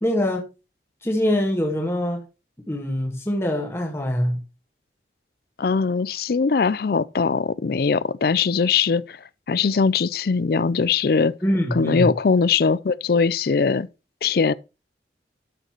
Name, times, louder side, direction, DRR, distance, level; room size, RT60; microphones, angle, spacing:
voice 1, 0.0-0.4 1.0-2.2 2.7-4.4 11.4-12.1, left 1 dB, 15° left, 1.6 m, -23 dB
voice 2, 5.6-9.2 9.5-11.3 11.7-13.9 14.2-14.5, left 5 dB, 55° left, 0.4 m, -21 dB
12.0 x 6.6 x 3.0 m
head